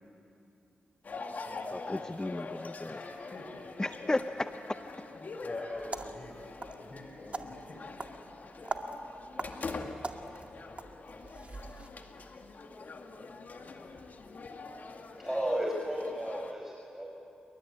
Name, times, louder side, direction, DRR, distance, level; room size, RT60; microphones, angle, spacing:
sound 1, 1.0-16.5, left 3 dB, 60° left, 2.2 m, -44 dB
voice 1, 1.7-3.0 3.8-4.5, left 2 dB, 20° left, 9 dB, 0.8 m, -34 dB
voice 2, 2.8-4.1 5.1-8.0 8.4-8.6, left 2 dB, 45° left, 1 dB, 4.3 m, -45 dB
sound 2, 5.7-11.9, right 3 dB, 40° right, 2.0 m, -42 dB
voice 3, 15.2-17.1, equal, 10° right, -1 dB, 4.9 m, -33 dB
29.5 x 23.0 x 8.7 m, 2.7 s
cardioid pair, 50°, 3 cm